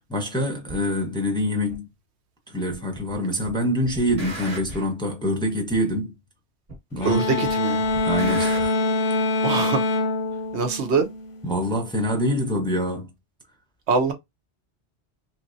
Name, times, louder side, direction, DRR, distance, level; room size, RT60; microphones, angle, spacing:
voice 1, 0.1-1.9 2.5-6.1 6.9-7.5 8.0-8.7 11.4-13.1, equal, 5° left, 0.6 m, -25 dB
sound 1, 0.7-0.8 1.7-1.8 2.7-3.2 3.4-4.9 5.7-5.8 6.7-7.2 7.4-8.7, right 1 dB, 35° right, 1.1 m, -37 dB
sound 2, 7.0-11.5, left 2 dB, 65° left, 0.7 m, -24 dB
voice 2, 7.0-7.8 9.4-9.8 10.5-11.1 13.9-14.1, right 5 dB, 75° right, 1.0 m, -23 dB
3.3 x 2.9 x 2.6 m
omnidirectional pair, 1.1 m